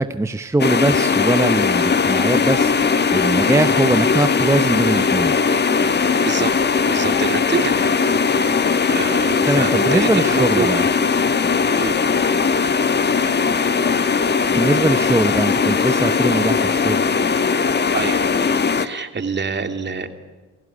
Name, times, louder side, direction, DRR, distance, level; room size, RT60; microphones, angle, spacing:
voice 1, 0.0-5.4 9.5-10.9 14.5-17.1, right 2 dB, 10° right, 10 dB, 0.8 m, -21 dB
sound 1, 0.6-18.9, left 5 dB, 35° left, 1.4 m, -19 dB
voice 2, 6.8-8.6 8.9-10.9 11.8-12.0 17.9-18.3 18.7-20.1, right 5 dB, 35° right, 7 dB, 2.8 m, -26 dB
28.5 x 16.0 x 9.8 m, 1.3 s
cardioid pair, 90°, 30 cm